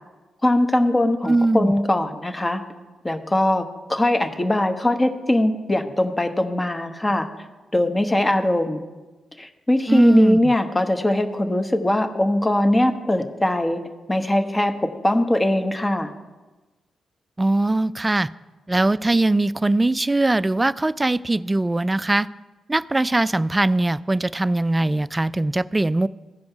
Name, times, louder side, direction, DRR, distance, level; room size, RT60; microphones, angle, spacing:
voice 1, 0.4-2.6 3.0-3.6 3.9-7.3 7.7-8.8 9.4-13.8 14.1-16.1, left 1 dB, 25° left, 7 dB, 1.1 m, -21 dB
voice 2, 1.3-1.7 9.9-10.5 17.4-18.3 18.7-22.3 22.7-26.1, right 2 dB, 20° right, 18 dB, 0.3 m, -21 dB
15.5 x 5.2 x 4.6 m, 1.2 s
hypercardioid pair, 40°, 0 cm